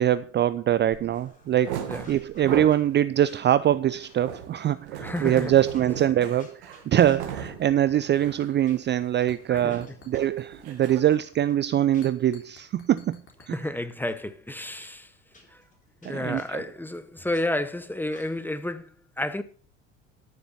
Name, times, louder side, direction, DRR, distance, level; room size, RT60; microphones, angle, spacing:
voice 1, 0.0-1.8 2.1-13.2 13.5-13.6 16.0-16.6, right 11 dB, 30° right, 0.5 m, -23 dB
sound 1, 0.9-1.1 1.5-2.9 3.3-7.6 8.0-8.5 8.8-9.0 9.3-11.0, right 9 dB, 70° right, 2.1 m, -37 dB
sound 2, 1.1-1.6 2.0-2.9 3.3-7.7 8.0-8.2 8.6-10.7 11.1-12.3 12.7-13.7 14.1-14.2 14.7-17.4 18.1-18.6, left 2 dB, 20° left, 4.4 m, -57 dB
voice 2, 5.0-5.5 6.9-7.0 9.5-9.8 13.5-15.1 15.5-15.6 16.0-19.4, left 1 dB, 5° left, 1.1 m, -31 dB
sound 3, 7.1-8.2 8.5-8.7 9.3-10.5 10.9-11.4 12.0-13.5, left 4 dB, 35° left, 3.9 m, -53 dB
13.0 x 7.2 x 5.7 m
hypercardioid pair, 65°, 35 cm